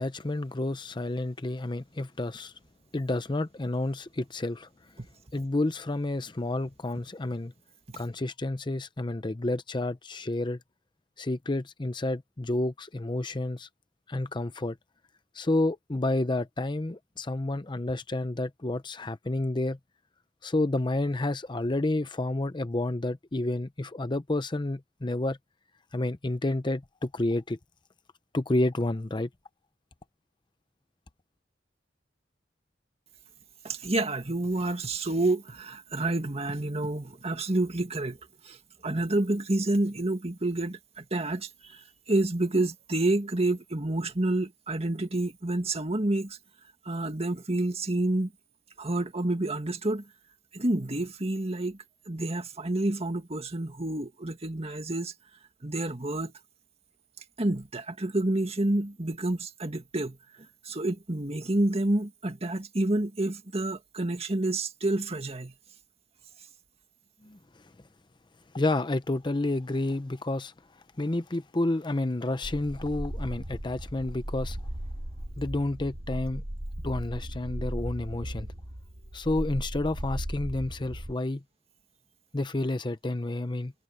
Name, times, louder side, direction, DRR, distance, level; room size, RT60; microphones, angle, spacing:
voice 1, 0.0-2.5 2.9-4.7 5.3-7.5 8.0-10.6 11.2-13.7 14.1-14.8 15.3-19.8 20.4-25.4 25.9-27.6 28.3-29.3 67.2-67.4 68.5-70.5 71.0-74.6 75.4-76.4 76.8-78.5 79.1-81.4 82.3-83.7, left 2 dB, 25° left, 0.7 m, -30 dB
voice 2, 33.6-38.2 38.4-38.6 38.8-46.4 46.9-48.3 48.8-50.0 50.5-51.8 52.1-55.1 55.6-56.3 57.4-60.2 60.6-65.5, right 2 dB, 35° right, 2.0 m, -29 dB
sound 1, 72.4-81.1, right 1 dB, 60° right, 2.4 m, -37 dB
head